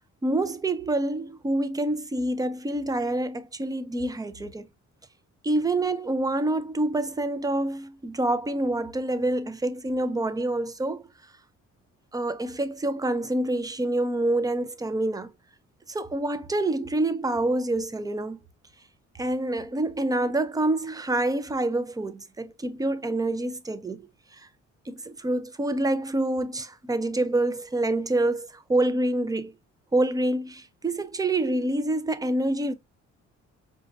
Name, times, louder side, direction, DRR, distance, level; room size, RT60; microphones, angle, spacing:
voice 1, 0.2-4.7 5.4-11.0 12.1-15.3 15.9-18.4 19.2-24.1 24.3-24.5 24.9-29.5 29.9-32.7, right 2 dB, 10° right, 0.5 m, -27 dB
5.0 x 2.5 x 2.4 m
cardioid pair, 90°, 30 cm